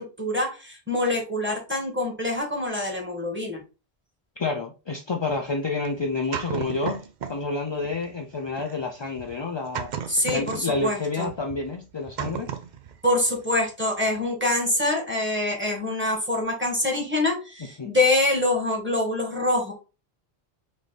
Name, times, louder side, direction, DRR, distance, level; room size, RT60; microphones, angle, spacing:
voice 1, 0.0-3.6 10.1-11.3 13.0-19.7, left 1 dB, 10° right, 1.4 m, -25 dB
voice 2, 4.4-7.0 7.3-9.9 10.2-12.5 17.8-17.9, left 3 dB, 45° left, 0.3 m, -29 dB
sound 1, 5.3-7.5 7.8-13.6 13.9-14.2, right 8 dB, 55° right, 0.6 m, -36 dB
4.0 x 3.2 x 3.2 m
omnidirectional pair, 1.1 m